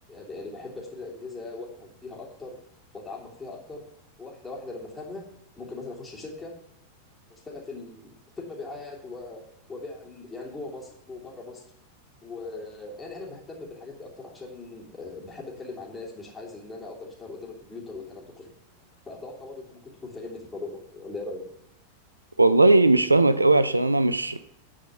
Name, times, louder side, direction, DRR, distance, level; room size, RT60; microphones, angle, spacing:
voice 1, 0.1-2.6 2.9-3.8 4.2-5.2 5.6-6.5 7.3-9.4 9.7-11.6 12.2-18.5 19.0-21.4, left 3 dB, 15° left, -3 dB, 3.1 m, -40 dB
voice 2, 22.4-24.4, right 2 dB, 85° right, 14 dB, 0.5 m, -18 dB
11.0 x 5.0 x 6.8 m, 0.77 s
figure-of-eight pair, 90°, 0 cm